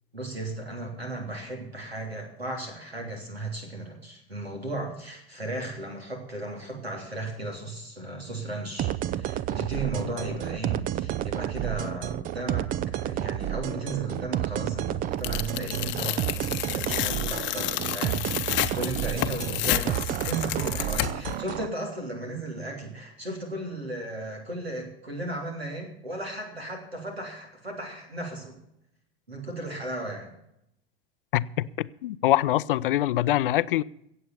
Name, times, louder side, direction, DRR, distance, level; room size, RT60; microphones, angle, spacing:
voice 1, 0.1-12.7 13.0-28.6 29.3-30.3, right 2 dB, 85° right, 3.4 m, -35 dB
sound 1, 8.8-21.7, right 12 dB, 30° right, 0.5 m, -30 dB
Tearing, 15.2-21.4, left 15 dB, 40° left, 0.9 m, -30 dB
voice 2, 31.3-33.8, left 14 dB, 60° left, 0.6 m, -24 dB
16.5 x 7.9 x 7.1 m
figure-of-eight pair, 80°, 30 cm